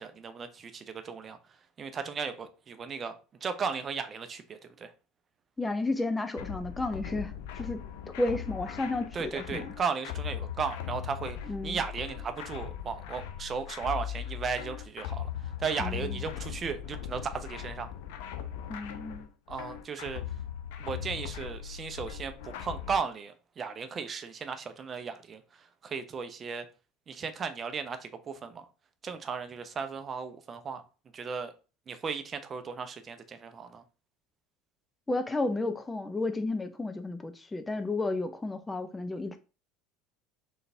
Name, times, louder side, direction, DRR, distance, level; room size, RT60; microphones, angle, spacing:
voice 1, 0.0-1.4 1.8-3.1 3.4-4.9 9.1-11.4 11.6-15.3 15.6-17.9 19.5-20.2 20.8-25.4 25.8-26.7 27.1-28.7 29.0-30.8 31.1-31.5 31.9-33.8, right 5 dB, 35° right, 0.6 m, -35 dB
voice 2, 5.6-7.8 8.2-9.7 11.5-11.8 15.8-16.2 18.7-19.3 35.1-39.4, left 2 dB, 15° left, 0.4 m, -32 dB
sound 1, 6.4-23.0, left 10 dB, 65° left, 0.5 m, -39 dB
3.8 x 3.4 x 2.6 m
hypercardioid pair, 70°, 0 cm